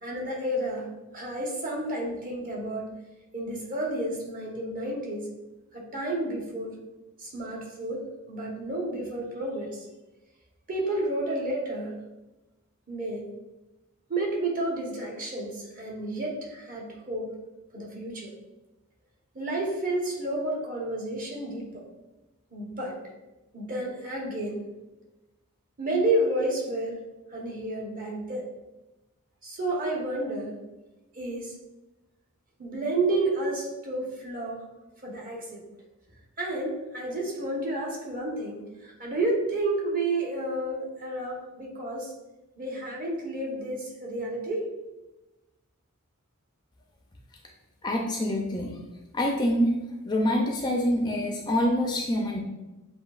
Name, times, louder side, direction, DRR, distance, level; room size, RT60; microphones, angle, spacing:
voice 1, 0.0-0.9 1.1-2.9 3.3-5.3 5.7-6.8 7.2-9.9 10.7-12.0 12.9-13.3 14.1-17.4 17.7-18.3 19.3-21.8 22.5-23.0 23.5-24.6 25.8-27.0 27.3-28.5 29.4-30.6 31.1-31.5 32.6-34.6 35.0-35.6 36.4-42.1 42.6-44.7, right 2 dB, 40° right, -2 dB, 1.1 m, -31 dB
voice 2, 47.8-48.7 49.1-49.8 50.0-52.4, left 1 dB, 20° left, 0 dB, 0.4 m, -25 dB
7.3 x 2.7 x 2.4 m, 1.0 s
head